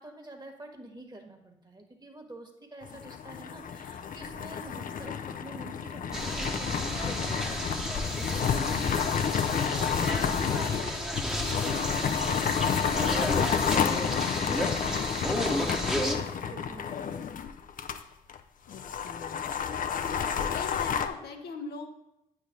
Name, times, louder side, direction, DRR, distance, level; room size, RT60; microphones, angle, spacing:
voice 1, 0.0-17.6, right 1 dB, 25° right, 4 dB, 1.5 m, -45 dB
sound 1, 2.8-18.0 18.3-18.4 18.7-21.1, left 7 dB, 50° left, 0.5 m, -30 dB
sound 2, 6.1-16.2, equal, 5° right, 1.1 m, -33 dB
voice 2, 10.4-10.7 18.7-19.5 20.3-21.9, left 5 dB, 65° left, 3 dB, 0.9 m, -41 dB
8.5 x 3.3 x 5.2 m, 0.88 s
hypercardioid pair, 40°, 18 cm